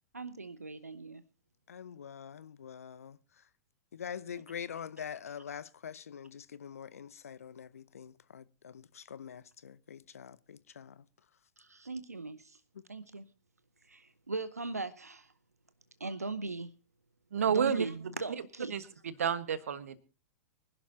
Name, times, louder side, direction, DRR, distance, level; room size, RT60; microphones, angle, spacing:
voice 1, 0.1-1.2 11.6-12.6 12.9-13.3 13.9-15.3 16.0-16.7 17.5-18.7, right 3 dB, 85° right, 0.7 m, -39 dB
voice 2, 1.7-3.2 3.9-11.0, left 8 dB, 70° left, 0.8 m, -45 dB
voice 3, 17.3-17.8 18.7-20.0, right 7 dB, 65° right, 1.4 m, -30 dB
24.5 x 11.5 x 2.8 m
figure-of-eight pair, 100°, 8 cm